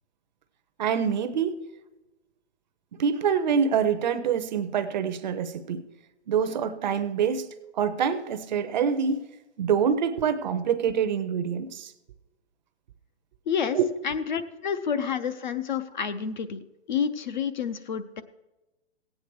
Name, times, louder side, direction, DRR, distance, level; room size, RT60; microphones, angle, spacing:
voice 1, 0.8-1.6 3.0-5.8 6.3-7.5 7.7-9.2 9.6-11.9 13.7-13.8, right 7 dB, 40° right, 11 dB, 0.6 m, -25 dB
voice 2, 13.5-13.8 14.0-16.6 16.9-18.2, left 7 dB, 40° left, 11 dB, 0.5 m, -29 dB
16.5 x 8.6 x 4.6 m, 1.1 s
hypercardioid pair, 155°, 35 cm